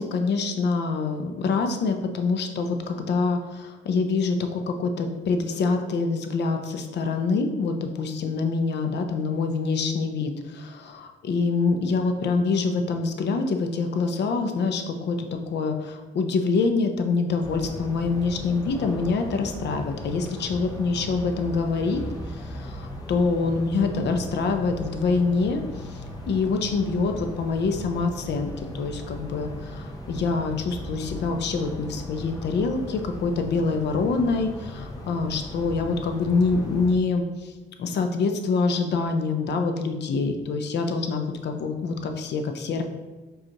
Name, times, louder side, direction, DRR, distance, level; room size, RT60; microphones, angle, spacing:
voice 1, 0.0-22.0 22.3-37.5 37.8-42.8, left 4 dB, 60° left, 6 dB, 0.5 m, -25 dB
sound 1, 17.4-36.9, left 1 dB, 20° left, 0.7 m, -37 dB
4.9 x 2.4 x 2.9 m, 1.2 s
cardioid pair, 90°, 20 cm